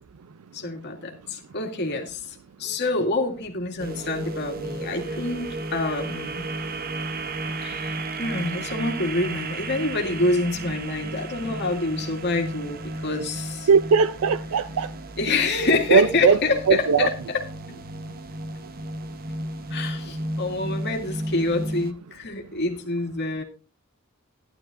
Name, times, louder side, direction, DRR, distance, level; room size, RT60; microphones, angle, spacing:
voice 1, 0.5-6.5 7.6-13.7 15.2-17.8 19.7-23.4, left 2 dB, 55° left, 2.2 m, -27 dB
sound 1, 3.8-21.9, right 2 dB, 45° right, 0.8 m, -33 dB
voice 2, 13.7-14.9 15.9-16.4 16.7-17.1, right 6 dB, 75° right, 0.4 m, -19 dB
14.0 x 11.5 x 2.5 m
head